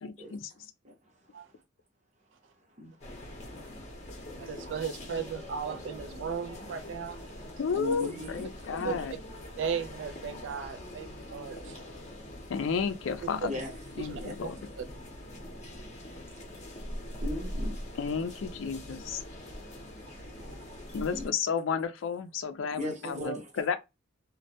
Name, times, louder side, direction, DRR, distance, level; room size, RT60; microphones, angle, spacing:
voice 1, 0.0-0.5 7.6-9.1 12.5-13.5 14.0-14.6 18.0-19.2 20.9-23.8, left 5 dB, 85° left, 0.4 m, -32 dB
voice 2, 2.8-3.6 7.7-8.5 8.8-9.0 13.5-13.7 14.1-14.3 16.0-16.7 17.1-17.8 20.1-20.3 21.1-21.3 22.7-23.5, left 2 dB, 35° right, 0.8 m, -39 dB
sound 1, 3.0-21.3, left 1 dB, 35° left, 0.7 m, -43 dB
voice 3, 4.4-7.6 8.8-8.9 9.6-12.1 13.4-13.5 14.0-14.5 14.8-14.9 20.0-20.9, right 7 dB, 65° right, 0.3 m, -37 dB
2.2 x 2.1 x 2.7 m
head